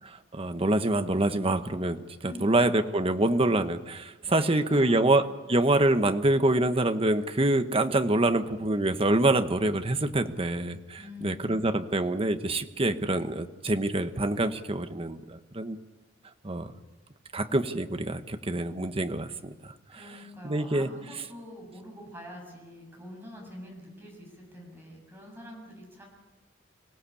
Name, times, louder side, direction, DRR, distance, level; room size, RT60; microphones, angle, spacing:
voice 1, 0.3-15.8 16.4-16.7 17.3-19.7 20.4-20.9, right 2 dB, 30° right, 9 dB, 1.1 m, -26 dB
voice 2, 2.2-2.6 4.4-5.2 11.0-11.6 19.9-26.1, left 1 dB, 10° right, 0 dB, 7.5 m, -45 dB
25.0 x 17.5 x 8.5 m, 1.2 s
head